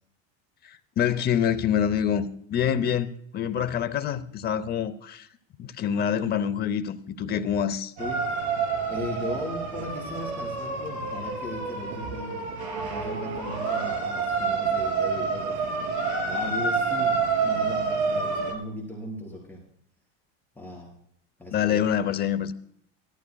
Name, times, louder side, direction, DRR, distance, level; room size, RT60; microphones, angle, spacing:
voice 1, 0.6-5.3 5.6-7.9 21.5-22.5, left 8 dB, 30° left, 13 dB, 0.7 m, -26 dB
sound 1, 8.0-18.5, right 4 dB, 85° right, 3.4 m, -28 dB
voice 2, 8.9-12.5 12.7-15.7 16.3-19.6 20.6-20.9 21.4-21.9, left 1 dB, 5° left, -3 dB, 4.2 m, -37 dB
18.0 x 14.0 x 2.3 m, 0.67 s
cardioid pair, 150°, 33 cm